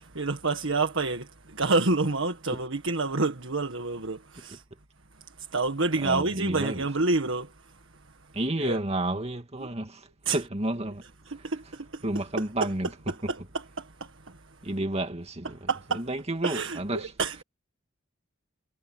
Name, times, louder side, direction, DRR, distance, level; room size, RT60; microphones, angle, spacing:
voice 1, 0.0-4.6 5.4-7.5 8.6-8.8 9.6-9.7 10.2-10.4 11.3-12.1 12.6-12.7 13.1-13.4 13.8-14.1 15.7-16.0 16.4-17.4, right 3 dB, 70° right, 1.7 m, -28 dB
voice 2, 6.0-6.9 8.3-11.0 11.4-11.5 12.0-12.9 13.2-13.3 14.6-17.1, right 1 dB, 30° right, 2.3 m, -31 dB
head